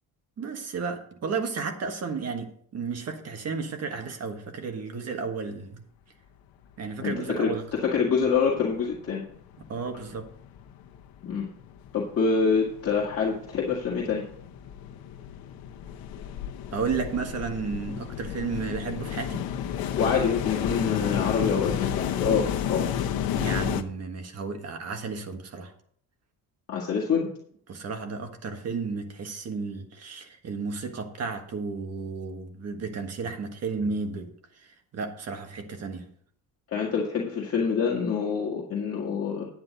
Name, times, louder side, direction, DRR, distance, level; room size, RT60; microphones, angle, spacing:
voice 1, 0.4-5.8 6.8-7.6 9.7-10.3 16.7-19.5 23.3-25.7 27.7-34.3 34.6-36.1, right 5 dB, 45° right, 1.5 m, -33 dB
voice 2, 7.0-9.2 11.2-11.5 11.9-14.2 20.0-22.9 26.7-27.3 36.7-39.5, left 5 dB, 40° left, 1.8 m, -26 dB
sound 1, 7.2-7.3 7.5-8.5 8.8-23.8, left 9 dB, 80° left, 1.0 m, -32 dB
9.7 x 8.9 x 4.0 m
cardioid pair, 150°, 35 cm